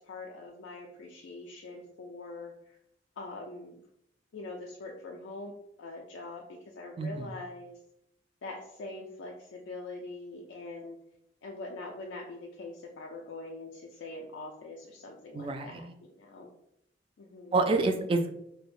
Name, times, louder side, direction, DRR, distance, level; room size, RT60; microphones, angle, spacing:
voice 1, 0.0-2.8 3.2-3.8 4.3-5.5 5.8-7.8 8.4-11.0 11.4-16.5 17.2-17.5, left 2 dB, 90° left, 0 dB, 0.4 m, -43 dB
voice 2, 7.0-7.3 15.3-15.9 17.5-18.4, right 3 dB, 30° right, 6 dB, 0.3 m, -28 dB
4.6 x 2.1 x 2.5 m, 0.78 s
head